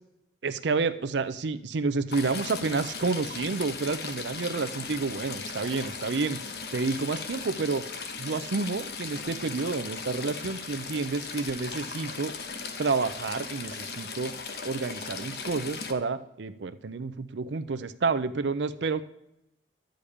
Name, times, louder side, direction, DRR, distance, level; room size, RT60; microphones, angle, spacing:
voice 1, 0.4-6.4 6.7-7.8 8.2-12.3 12.8-14.3 14.6-19.0, right 4 dB, 75° right, 10 dB, 0.5 m, -29 dB
Stream / Trickle dribble, 2.1-15.9, left 5 dB, 60° left, 1.0 m, -38 dB
11.5 x 5.1 x 8.4 m, 0.86 s
head